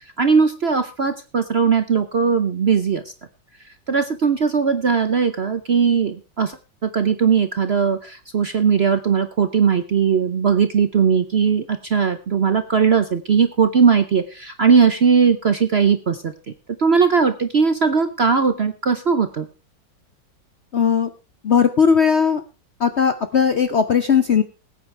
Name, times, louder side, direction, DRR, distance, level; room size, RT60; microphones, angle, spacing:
voice 1, 0.2-3.0 3.9-6.5 6.8-16.3 16.8-19.5, right 6 dB, 50° right, 9 dB, 0.7 m, -18 dB
voice 2, 20.7-21.1 21.4-22.4 22.8-24.4, left 6 dB, 55° left, 10 dB, 0.7 m, -17 dB
21.0 x 9.0 x 3.3 m, 0.30 s
omnidirectional pair, 2.0 m